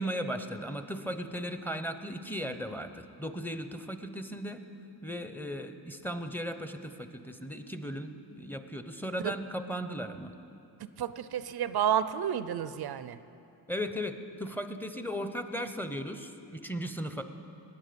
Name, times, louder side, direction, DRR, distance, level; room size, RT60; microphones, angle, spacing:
voice 1, 0.0-4.6 5.0-10.3 13.7-17.2, equal, 5° left, 8 dB, 0.7 m, -36 dB
voice 2, 11.0-13.2, right 9 dB, 65° right, 14 dB, 0.5 m, -30 dB
20.0 x 8.9 x 5.2 m, 2.7 s
cardioid pair, 80°, 41 cm